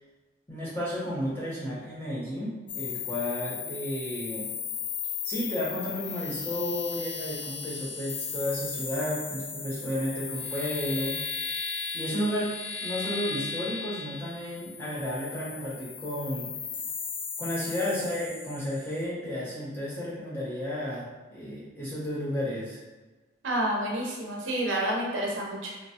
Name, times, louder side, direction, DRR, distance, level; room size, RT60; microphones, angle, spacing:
voice 1, 0.5-4.5 5.2-11.5 11.9-12.5 12.8-16.5 17.4-22.8, left 1 dB, 10° left, -7 dB, 0.7 m, -32 dB
sound 1, 2.7-19.0, left 6 dB, 65° left, 0.4 m, -36 dB
voice 2, 23.4-25.9, right 1 dB, 85° right, -2 dB, 0.7 m, -29 dB
3.1 x 2.0 x 2.7 m, 1.2 s
head